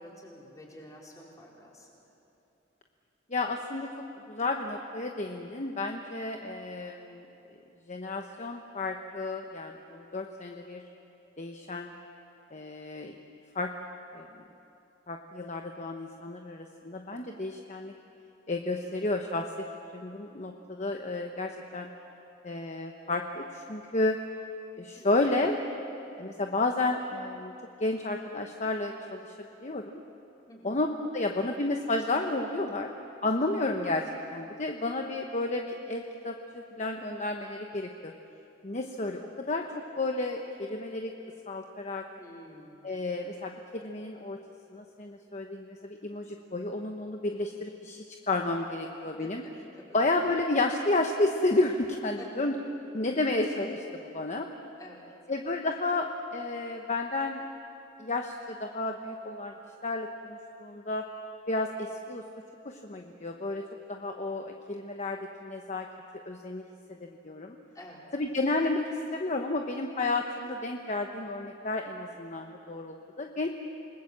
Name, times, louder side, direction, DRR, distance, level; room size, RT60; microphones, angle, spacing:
voice 1, 0.0-1.9 25.0-25.1 30.5-30.8 42.2-42.9 49.2-50.0 52.2-52.6 54.8-55.1 67.7-68.1, equal, 20° left, -3 dB, 4.5 m, -49 dB
voice 2, 3.3-3.9 4.3-7.3 7.9-10.8 11.4-11.9 12.5-13.1 13.5-13.7 14.1-14.3 15.1-17.9 18.5-19.5 19.9-21.9 22.4-24.2 24.8-25.6 26.2-27.5 27.8-29.3 29.6-29.8 30.6-32.9 33.2-34.0 34.3-38.1 38.6-39.6 40.0-41.1 41.5-42.0 42.8-44.4 44.7-49.4 49.9-52.5 52.9-54.5 55.3-57.4 58.0-59.5 59.8-61.0 61.5-62.2 62.6-63.6 63.9-65.9 66.3-66.6 66.9-67.6 68.1-68.8 69.1-73.5, left 2 dB, 40° left, 3 dB, 1.0 m, -31 dB
27.5 x 20.0 x 7.5 m, 2.9 s
head